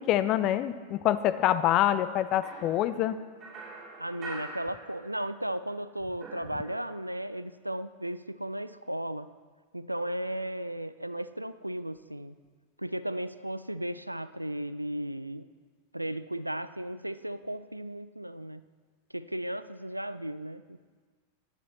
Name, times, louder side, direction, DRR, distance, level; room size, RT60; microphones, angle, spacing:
voice 1, 0.0-3.2, left 12 dB, 40° left, 13 dB, 0.5 m, -26 dB
sound 1, 2.4-5.4 5.7-7.2, right 2 dB, 30° right, 3.1 m, -45 dB
voice 2, 4.0-9.3 9.7-12.4 12.8-15.5 15.9-18.6 19.1-20.8, right 1 dB, 85° right, 14 dB, 0.3 m, -35 dB
14.5 x 10.0 x 3.1 m, 1.5 s
figure-of-eight pair, 90°, 0 cm